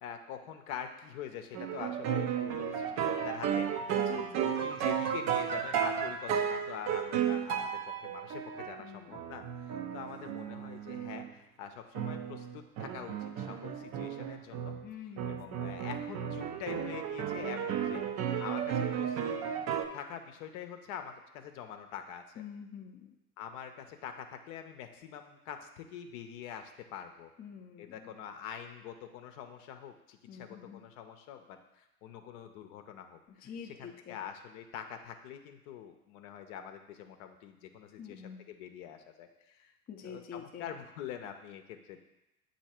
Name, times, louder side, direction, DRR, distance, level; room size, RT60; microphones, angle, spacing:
voice 1, 0.0-3.7 4.4-14.8 15.3-18.0 18.4-19.4 19.9-22.4 23.4-27.3 27.8-39.7 40.0-42.0, left 8 dB, 60° left, 6 dB, 0.7 m, -45 dB
sound 1, 1.5-11.3 11.9-14.9 15.2-19.9, right 8 dB, 40° right, 0.6 m, -34 dB
voice 2, 4.0-4.7 8.8-9.1 14.8-15.5 22.4-23.1 27.4-28.1 30.3-30.8 33.4-34.2 38.0-38.4 39.9-40.7, left 7 dB, 20° left, 3 dB, 0.6 m, -46 dB
7.9 x 2.9 x 4.3 m, 0.91 s
hypercardioid pair, 75°, 45 cm